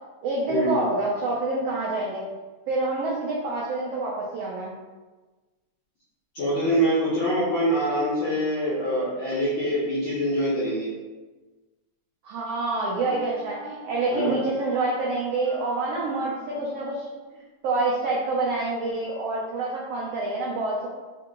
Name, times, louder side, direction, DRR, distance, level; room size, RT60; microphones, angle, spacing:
voice 1, 0.2-2.2 2.7-4.7 12.2-17.1 17.3-20.9, right 3 dB, 90° right, -4 dB, 1.3 m, -27 dB
voice 2, 6.3-10.9 14.1-14.3, equal, 60° left, -10 dB, 1.3 m, -24 dB
sound 1, 13.0-16.9, left 3 dB, 45° left, 1.0 m, -43 dB
4.6 x 2.8 x 3.6 m, 1.2 s
omnidirectional pair, 3.6 m